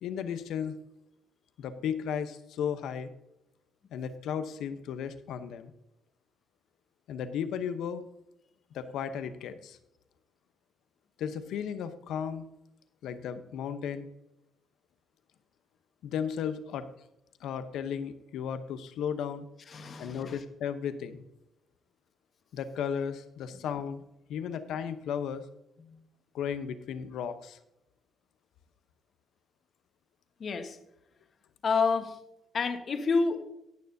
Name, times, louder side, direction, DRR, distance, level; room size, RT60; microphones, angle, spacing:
voice 1, 0.0-0.8 1.6-3.1 3.9-5.7 7.1-8.0 8.7-9.8 11.2-12.5 13.0-14.1 16.0-16.9 17.4-19.4 20.0-21.2 22.5-25.4 26.3-27.6, left 8 dB, 80° left, 11 dB, 0.8 m, -35 dB
voice 2, 19.7-20.4 23.5-23.6 25.8-26.0 30.4-30.8 31.6-32.2 32.5-33.4, left 4 dB, 50° left, 7 dB, 1.2 m, -29 dB
18.0 x 6.6 x 2.7 m, 0.87 s
cardioid pair, 90°, 0 cm